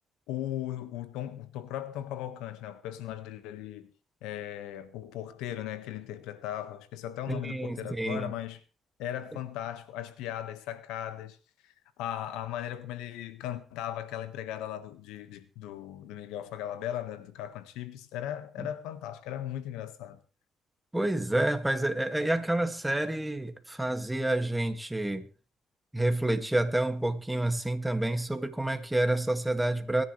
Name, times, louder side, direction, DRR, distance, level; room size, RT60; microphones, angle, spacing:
voice 1, 0.3-3.9 4.2-8.6 9.0-11.4 11.6-20.2, left 11 dB, 90° left, 1.5 m, -37 dB
voice 2, 7.3-8.3 20.9-25.3 25.9-30.0, right 1 dB, 10° right, 2.0 m, -29 dB
24.5 x 10.5 x 3.2 m
supercardioid pair, 65°, 0 cm